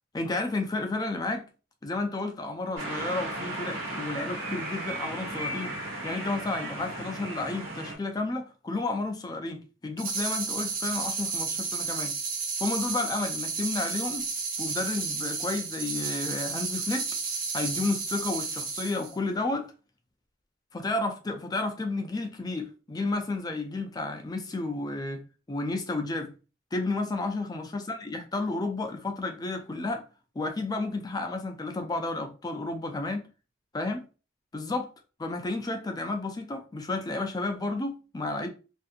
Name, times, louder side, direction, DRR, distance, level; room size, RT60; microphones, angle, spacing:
voice 1, 0.1-1.4 1.8-5.7 6.0-12.2 12.6-14.3 14.6-17.1 17.5-19.7 20.7-25.2 25.5-26.3 26.7-30.0 30.4-33.3 33.7-34.0 34.5-34.9 35.2-38.5, left 2 dB, 20° left, 0.4 m, -31 dB
sound 1, 2.8-8.0, right 1 dB, 85° right, 1.1 m, -35 dB
sound 2, 10.0-19.1, right 5 dB, 45° right, 0.6 m, -32 dB
2.6 x 2.6 x 2.4 m
head